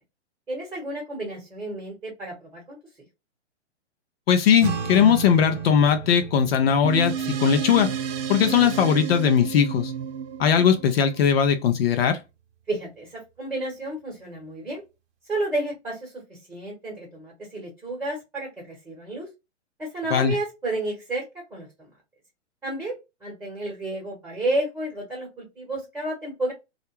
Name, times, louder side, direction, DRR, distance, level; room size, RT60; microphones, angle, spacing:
voice 1, 0.5-2.8 12.7-14.8 15.3-19.3 19.8-21.9 22.6-26.5, right 2 dB, 10° right, 1.1 m, -31 dB
voice 2, 4.3-7.9 8.3-9.9 10.4-12.2 20.1-20.3, left 8 dB, 55° left, 0.6 m, -19 dB
sound 1, 4.6-11.2, right 6 dB, 35° right, 0.8 m, -36 dB
sound 2, 6.8-11.6, right 8 dB, 70° right, 0.6 m, -31 dB
2.4 x 2.0 x 3.0 m
hypercardioid pair, 120°, 36 cm